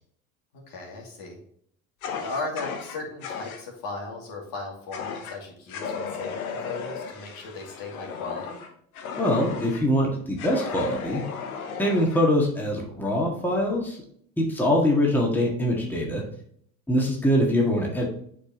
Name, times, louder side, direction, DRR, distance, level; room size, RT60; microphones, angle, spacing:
voice 1, 0.5-1.4 2.2-8.6, left 3 dB, 55° left, -1 dB, 2.7 m, -37 dB
Fire, 2.0-3.6 4.9-5.4 5.7-9.9 10.4-12.2, left 5 dB, 80° left, 1.0 m, -35 dB
voice 2, 9.2-11.2 11.8-14.0 14.4-16.2 16.9-18.0, equal, 5° left, -2 dB, 1.8 m, -23 dB
8.1 x 4.7 x 3.0 m, 0.64 s
hypercardioid pair, 75°, 42 cm